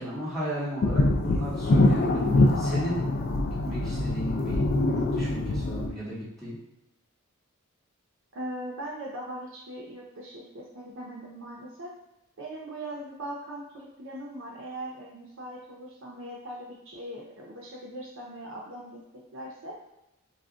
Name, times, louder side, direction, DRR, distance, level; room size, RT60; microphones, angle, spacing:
voice 1, 0.0-3.0 3.4-6.6, equal, ahead, -10 dB, 1.1 m, -35 dB
sound 1, 0.8-5.9, left 2 dB, 45° left, 0.3 m, -24 dB
voice 2, 8.3-11.9 12.4-19.8, right 1 dB, 60° right, -3 dB, 0.6 m, -40 dB
2.4 x 2.1 x 3.6 m, 0.91 s
head